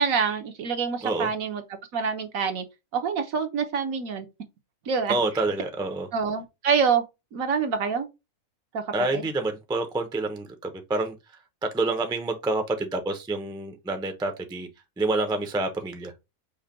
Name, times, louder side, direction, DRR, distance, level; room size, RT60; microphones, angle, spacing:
voice 1, 0.0-1.6 1.9-2.6 2.9-4.3 4.9-5.2 6.1-7.0 7.3-8.1 8.7-8.8 9.1-9.3, right 6 dB, 75° right, 1.3 m, -26 dB
voice 2, 5.1-6.1 8.9-11.2 11.6-14.7 15.0-16.1, right 2 dB, 5° right, 0.3 m, -28 dB
5.5 x 2.2 x 4.0 m
omnidirectional pair, 1.4 m